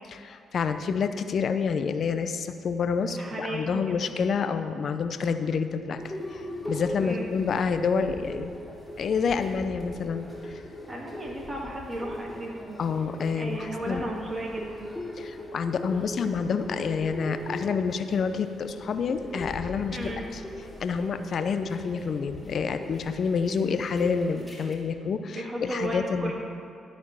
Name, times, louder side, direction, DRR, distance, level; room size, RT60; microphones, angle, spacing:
voice 1, 0.1-6.0 6.3-8.5 9.0-10.6 12.8-14.1 15.2-20.0 20.3-20.4 20.8-26.3, left 5 dB, 60° left, 9 dB, 0.6 m, -28 dB
voice 2, 3.0-3.8 7.0-7.3 10.9-12.7 13.4-14.9 19.9-20.3 25.3-26.3, right 1 dB, 30° right, -2 dB, 2.5 m, -34 dB
sound 1, 6.0-24.8, left 1 dB, 10° left, 2.7 m, -40 dB
13.0 x 4.4 x 7.2 m, 2.5 s
supercardioid pair, 65°, 0 cm